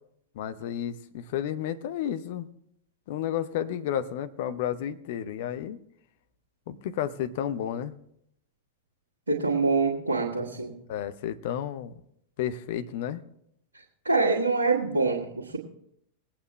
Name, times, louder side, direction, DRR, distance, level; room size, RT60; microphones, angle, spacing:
voice 1, 0.3-2.5 3.1-5.8 6.7-7.9 10.9-12.0 12.4-13.2, left 10 dB, 50° left, 11 dB, 0.8 m, -32 dB
voice 2, 9.3-10.8 14.0-15.6, right 3 dB, 80° right, -8 dB, 1.9 m, -25 dB
20.5 x 8.7 x 3.2 m, 0.72 s
figure-of-eight pair, 90°, 0 cm